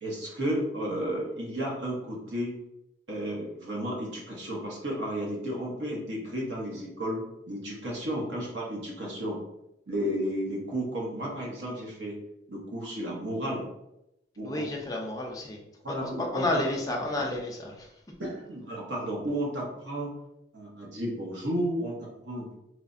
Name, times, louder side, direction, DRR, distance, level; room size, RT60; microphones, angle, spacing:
voice 1, 0.0-2.6 3.1-9.4 9.9-12.2 12.5-13.7 14.4-14.7 15.8-16.6 18.2-20.1 20.5-22.5, equal, 75° right, -2 dB, 0.8 m, -33 dB
voice 2, 14.4-15.6 15.9-17.9, left 1 dB, 20° left, 0 dB, 0.4 m, -31 dB
3.1 x 2.0 x 2.5 m, 0.86 s
head